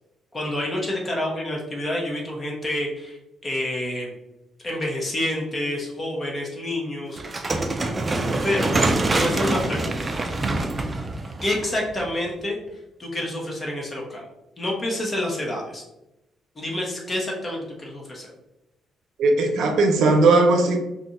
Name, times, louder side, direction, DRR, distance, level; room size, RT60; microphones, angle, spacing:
voice 1, 0.3-3.2 3.4-4.1 4.6-7.2 8.4-8.7 9.1-10.1 11.4-12.6 13.0-14.2 14.6-15.8 16.5-18.3, left 1 dB, 25° left, -2 dB, 1.1 m, -28 dB
sound 1, 7.2-12.3, right 2 dB, 30° right, 0.4 m, -25 dB
voice 2, 19.2-20.8, right 3 dB, 75° right, 3 dB, 0.6 m, -18 dB
2.5 x 2.4 x 4.1 m, 0.93 s
cardioid pair, 90°, 0 cm